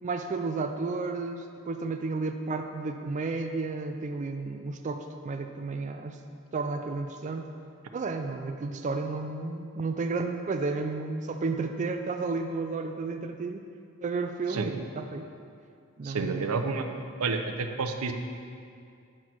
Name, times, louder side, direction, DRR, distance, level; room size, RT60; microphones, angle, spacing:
voice 1, 0.0-6.2 6.5-7.5 7.9-13.6 14.0-15.3 16.0-16.5, right 3 dB, 35° right, 5 dB, 0.4 m, -32 dB
voice 2, 16.0-16.9 17.2-18.1, right 4 dB, 85° right, 6 dB, 0.6 m, -29 dB
9.0 x 6.0 x 4.6 m, 2.4 s
head